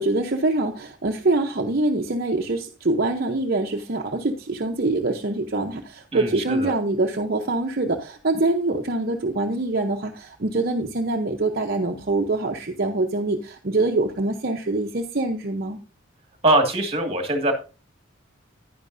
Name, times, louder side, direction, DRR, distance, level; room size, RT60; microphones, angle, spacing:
voice 1, 0.0-15.8, right 2 dB, 50° right, 2 dB, 0.8 m, -24 dB
voice 2, 6.1-6.7 16.4-17.5, right 1 dB, 30° right, 4 dB, 1.8 m, -22 dB
10.5 x 10.0 x 2.6 m, 0.32 s
head